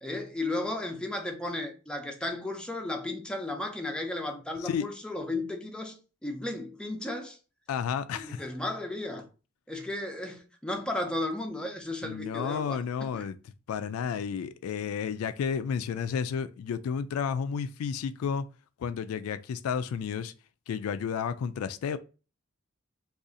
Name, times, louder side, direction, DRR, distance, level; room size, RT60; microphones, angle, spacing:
voice 1, 0.0-6.0 6.2-7.4 8.1-9.2 9.7-13.3, left 2 dB, 5° left, 0.5 m, -34 dB
voice 2, 7.7-8.4 12.0-13.4 13.7-18.5 18.8-20.3 20.7-22.0, left 7 dB, 90° left, 0.3 m, -31 dB
2.6 x 2.4 x 3.7 m
head